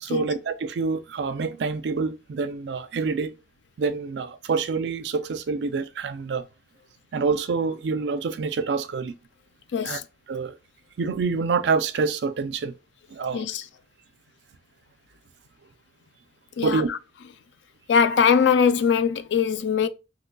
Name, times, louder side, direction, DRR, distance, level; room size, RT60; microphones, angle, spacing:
voice 1, 0.0-3.3 3.8-6.4 7.1-9.1 9.8-10.0 10.3-10.6 11.0-12.7 13.1-13.5 16.6-16.9, right 4 dB, 75° right, 0.4 m, -26 dB
voice 2, 9.7-10.0 13.3-13.7 16.6-17.0 17.9-19.9, left 6 dB, 85° left, 0.3 m, -21 dB
3.8 x 3.0 x 2.2 m
head